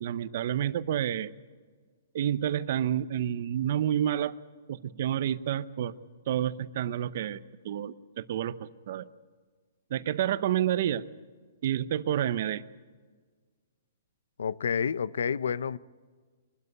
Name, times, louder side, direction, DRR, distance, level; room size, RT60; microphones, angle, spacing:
voice 1, 0.0-1.3 2.1-4.3 4.7-5.9 6.3-7.4 7.6-9.1 9.9-11.1 11.6-12.6, right 11 dB, 45° right, 0.7 m, -29 dB
voice 2, 14.4-15.8, left 7 dB, 85° left, 0.6 m, -29 dB
23.5 x 12.5 x 9.6 m
hypercardioid pair, 170°, 0 cm